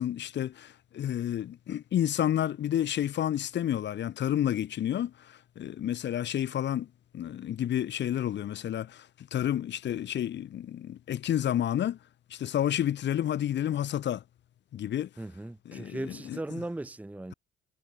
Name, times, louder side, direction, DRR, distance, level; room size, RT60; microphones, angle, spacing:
voice 1, 0.0-5.1 5.6-6.9 7.1-9.1 9.3-12.0 12.3-14.2 14.7-15.1 15.6-16.4, left 11 dB, 65° left, 1.3 m, -30 dB
voice 2, 15.2-17.3, right 2 dB, 5° right, 0.8 m, -37 dB
cardioid pair, 90°, 20 cm